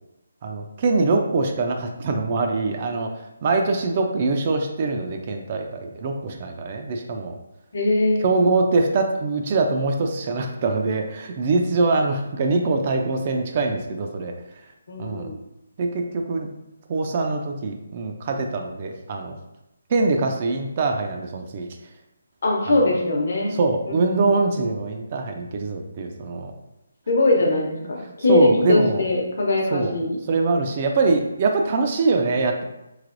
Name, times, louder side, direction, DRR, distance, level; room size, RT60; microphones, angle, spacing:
voice 1, 0.4-3.1 3.4-7.4 8.2-14.3 15.0-15.3 15.8-16.5 16.9-19.4 19.9-21.7 22.7-22.9 23.5-26.5 28.3-29.0 29.7-29.9 30.3-32.6, right 3 dB, 35° right, 3 dB, 0.4 m, -23 dB
voice 2, 7.7-8.3 14.9-15.4 22.4-23.5 23.9-24.3 27.1-30.1, left 2 dB, 60° left, -1 dB, 0.8 m, -21 dB
3.2 x 2.8 x 2.5 m, 0.87 s
hypercardioid pair, 160°, 0 cm